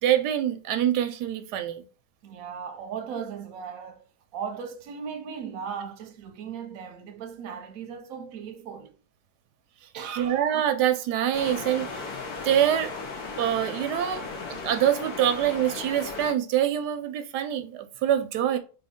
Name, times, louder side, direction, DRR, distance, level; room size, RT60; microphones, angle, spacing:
voice 1, 0.0-1.8 10.1-12.1 12.4-12.9 13.4-14.2 14.5-18.6, right 10 dB, 85° right, 1.2 m, -25 dB
voice 2, 2.2-4.0 4.3-9.0 9.9-10.4, right 7 dB, 65° right, 1.0 m, -37 dB
sound 1, 11.3-16.3, left 4 dB, 70° left, 1.3 m, -36 dB
4.3 x 3.3 x 3.6 m
omnidirectional pair, 1.7 m